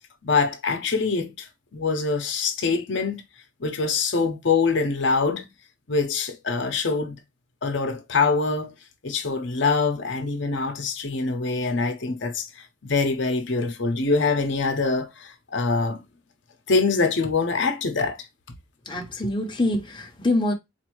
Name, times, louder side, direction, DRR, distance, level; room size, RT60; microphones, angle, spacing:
voice 1, 0.2-3.2 3.6-5.5 5.9-7.2 7.6-8.7 9.0-16.0 16.7-18.2, left 4 dB, 65° left, 0.8 m, -24 dB
voice 2, 18.8-20.5, left 2 dB, 25° left, 0.8 m, -25 dB
4.2 x 2.6 x 3.0 m
head